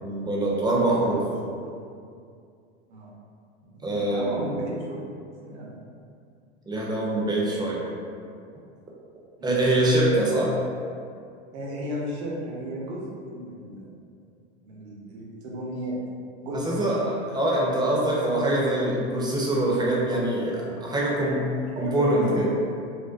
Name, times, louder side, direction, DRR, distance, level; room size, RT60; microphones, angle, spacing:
voice 1, 0.0-1.2 3.8-4.3 6.7-7.8 9.4-10.5 16.5-21.5 21.8-22.5, right 1 dB, 10° right, -5 dB, 0.5 m, -24 dB
voice 2, 0.7-1.3 1.6-1.7 2.9-3.1 3.6-4.9 5.4-5.8 9.4-9.6 11.5-13.9 14.6-16.0 16.4-16.6 18.3-18.8 21.5-22.6, right 1 dB, 70° right, -3 dB, 0.7 m, -34 dB
2.5 x 2.1 x 2.4 m, 2.3 s
hypercardioid pair, 95°, 34 cm